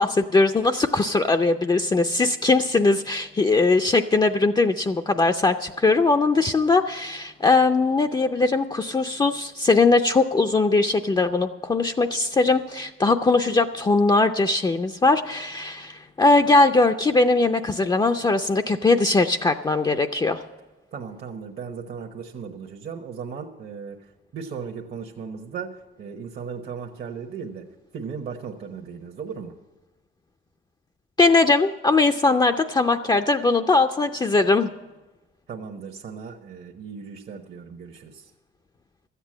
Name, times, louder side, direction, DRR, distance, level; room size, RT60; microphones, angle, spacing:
voice 1, 0.0-20.4 31.2-34.7, left 3 dB, 20° left, 6 dB, 0.5 m, -20 dB
voice 2, 20.9-24.0 24.3-27.6 27.9-29.5 35.5-38.3, right 6 dB, 55° right, 2 dB, 1.1 m, -36 dB
13.0 x 8.2 x 7.5 m, 1.1 s
cardioid pair, 90°, 20 cm